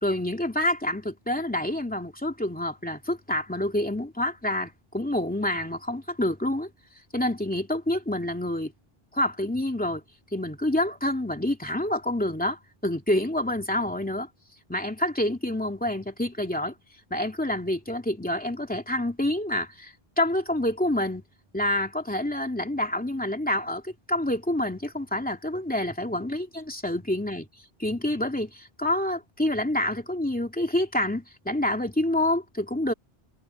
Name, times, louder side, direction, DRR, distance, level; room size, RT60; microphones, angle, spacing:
voice 1, 0.0-6.7 7.1-8.7 9.1-10.0 10.3-14.3 14.7-16.7 17.1-21.2 21.5-27.5 27.8-32.9, left 1 dB, 10° left, 2.6 m, -27 dB
omnidirectional pair, 1.0 m